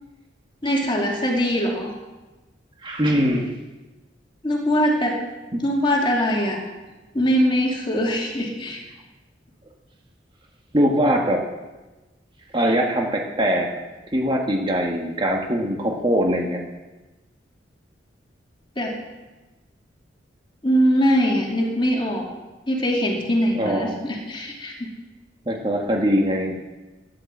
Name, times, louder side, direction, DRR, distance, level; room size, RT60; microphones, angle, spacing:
voice 1, 0.6-1.9 4.4-5.3 5.6-6.6 7.1-8.8 18.8-19.0 20.6-22.3 22.7-24.9, equal, 25° left, 0 dB, 2.6 m, -22 dB
voice 2, 2.8-3.5 5.5-5.6 10.7-11.4 12.5-13.7 14.1-16.6 23.5-24.0 25.4-26.6, equal, 25° right, 1 dB, 1.6 m, -22 dB
13.0 x 11.0 x 7.3 m, 1.2 s
head